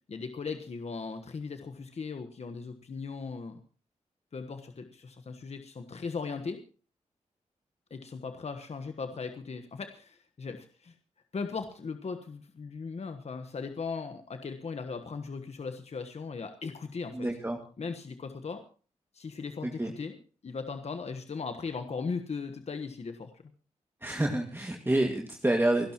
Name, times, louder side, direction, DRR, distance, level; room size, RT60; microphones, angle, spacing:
voice 1, 0.1-3.6 4.3-6.6 7.9-10.9 11.3-17.3 17.8-18.6 19.1-20.2 20.4-23.4, left 4 dB, 55° left, 7 dB, 1.3 m, -38 dB
voice 2, 17.1-17.6 19.6-19.9 24.0-25.9, right 1 dB, 15° right, 2 dB, 2.2 m, -28 dB
28.5 x 11.5 x 3.0 m, 0.40 s
cardioid pair, 55°, 13 cm